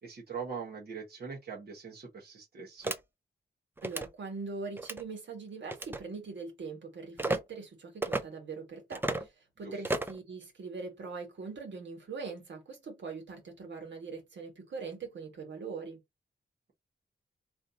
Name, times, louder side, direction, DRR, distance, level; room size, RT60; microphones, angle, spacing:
voice 1, 0.0-2.9 9.6-9.7, right 5 dB, 60° right, 1.2 m, -42 dB
sound 1, 2.8-3.0 3.8-4.1 4.8-5.0 5.7-6.0 7.2-7.4 8.0-8.2 8.9-9.3 9.8-10.2, right 2 dB, 10° right, 0.5 m, -32 dB
voice 2, 3.8-9.3 9.6-16.0, right 4 dB, 80° right, 1.6 m, -42 dB
3.2 x 2.7 x 4.0 m
wide cardioid pair, 135°, 19 cm